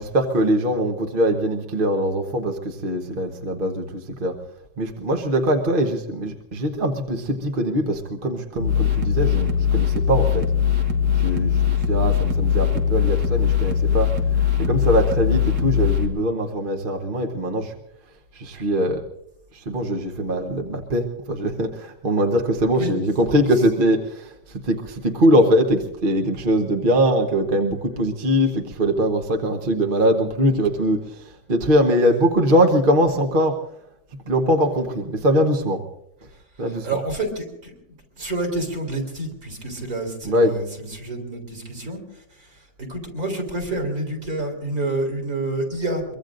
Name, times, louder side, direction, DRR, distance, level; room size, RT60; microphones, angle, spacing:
voice 1, 0.0-4.4 4.8-10.4 11.2-11.6 11.9-14.1 14.6-17.7 18.3-19.0 19.5-33.6 34.3-35.8 36.6-37.0 40.2-40.6, equal, 35° right, 3 dB, 1.1 m, -22 dB
sound 1, 8.6-16.1, left 8 dB, 70° right, 2.0 m, -21 dB
voice 2, 36.6-37.7 38.2-46.1, right 2 dB, 50° right, 2 dB, 4.0 m, -28 dB
23.5 x 23.5 x 2.6 m, 0.78 s
omnidirectional pair, 2.0 m